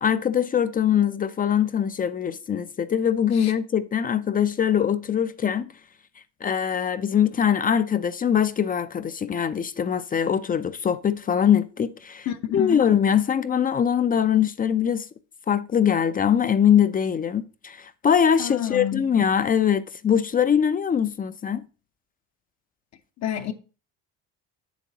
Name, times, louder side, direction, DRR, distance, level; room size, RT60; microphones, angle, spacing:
voice 1, 0.0-5.7 6.4-12.3 12.5-15.1 15.5-21.6, left 8 dB, 25° left, 0.4 m, -22 dB
voice 2, 12.3-12.8 18.4-19.0 23.2-23.5, left 11 dB, 55° left, 0.8 m, -29 dB
8.2 x 7.2 x 2.8 m
supercardioid pair, 95°, 33 cm